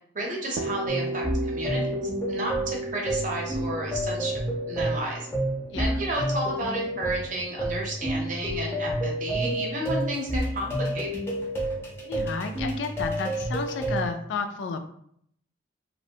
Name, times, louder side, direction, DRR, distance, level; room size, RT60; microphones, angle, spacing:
voice 1, 0.1-1.9 2.3-4.3 4.7-5.3 5.8-11.1, right 1 dB, 45° right, -1 dB, 0.6 m, -32 dB
sound 1, 0.6-8.3, right 2 dB, 75° right, 0.3 m, -36 dB
sound 2, 0.9-14.1, right 1 dB, 15° left, 0.5 m, -30 dB
voice 2, 12.0-14.8, left 4 dB, 75° left, 6 dB, 0.3 m, -32 dB
2.4 x 2.1 x 2.7 m, 0.68 s
head